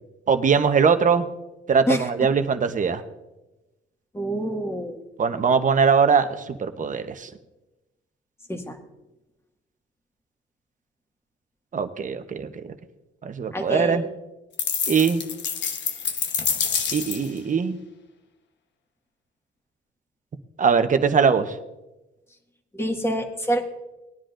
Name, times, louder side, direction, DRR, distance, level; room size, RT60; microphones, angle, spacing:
voice 1, 0.3-1.2 1.7-3.0 5.2-7.3 11.7-12.5 13.2-14.0 14.9-15.2 16.9-17.8 20.6-21.6, right 6 dB, 40° right, 8 dB, 1.0 m, -21 dB
voice 2, 4.1-5.0 8.5-8.8 13.5-14.1 22.7-23.6, equal, 10° left, 3 dB, 1.8 m, -26 dB
sound 1, 14.6-17.4, left 7 dB, 65° left, 1.1 m, -27 dB
20.0 x 10.0 x 2.5 m, 1.0 s
cardioid pair, 90°, 20 cm